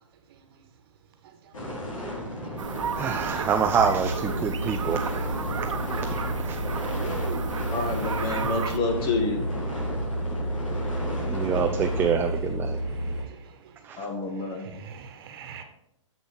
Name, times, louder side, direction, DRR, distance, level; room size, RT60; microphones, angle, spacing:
sound 1, 1.5-12.1, left 1 dB, 90° left, 4.0 m, -36 dB
sound 2, 2.6-8.8, right 6 dB, 75° right, 1.0 m, -33 dB
voice 1, 2.9-5.1 6.0-6.6 11.2-12.8 13.8-14.1, right 7 dB, 15° right, 0.4 m, -26 dB
sound 3, 3.7-13.2, right 1 dB, 65° left, 2.1 m, -31 dB
voice 2, 4.5-4.9 8.4-8.6 10.4-10.5 11.0-11.8 12.3-12.4 12.8-13.7 14.6-15.6, right 6 dB, 45° right, 1.5 m, -44 dB
voice 3, 7.7-9.4 14.0-14.7, left 3 dB, 30° left, 2.0 m, -28 dB
7.3 x 6.8 x 6.3 m
hypercardioid pair, 135°, 16 cm